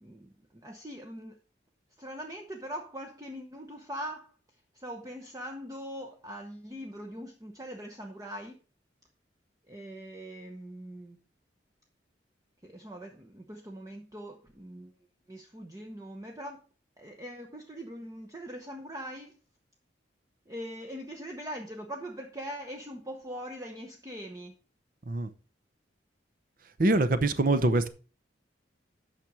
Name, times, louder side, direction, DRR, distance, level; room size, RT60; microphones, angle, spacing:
voice 1, 0.0-1.3 2.0-4.3 4.7-8.6 9.7-11.2 12.6-14.9 15.3-16.7 17.0-19.3 20.5-24.5, equal, 20° right, 0.8 m, -42 dB
voice 2, 26.8-27.9, right 2 dB, 50° right, 0.8 m, -24 dB
9.0 x 6.0 x 4.8 m
head